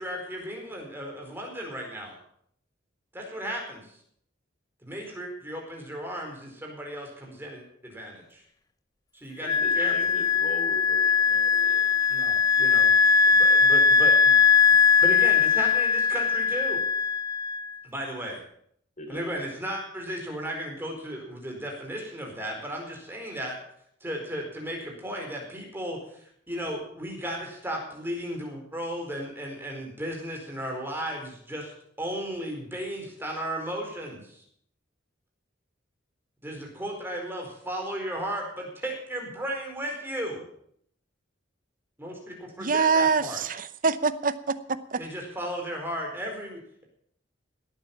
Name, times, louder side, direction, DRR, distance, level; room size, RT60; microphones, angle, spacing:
voice 1, 0.0-2.1 3.1-3.9 4.8-8.4 9.1-9.9 12.1-13.0 13.3-14.4 14.8-16.8 17.8-18.4 19.1-23.6 24.0-31.7 32.0-34.4 36.4-40.4 42.0-43.4 45.0-46.8, equal, 10° right, 1 dB, 4.5 m, -35 dB
Wind instrument woodwind instrument, 9.4-17.7, left 6 dB, 20° left, 0.6 m, -20 dB
voice 2, 9.6-12.0 19.0-19.3, left 1 dB, 40° left, 5 dB, 3.7 m, -41 dB
voice 3, 42.6-44.6 44.9-45.0, right 5 dB, 45° right, 13 dB, 0.7 m, -24 dB
18.0 x 9.1 x 7.1 m, 0.67 s
head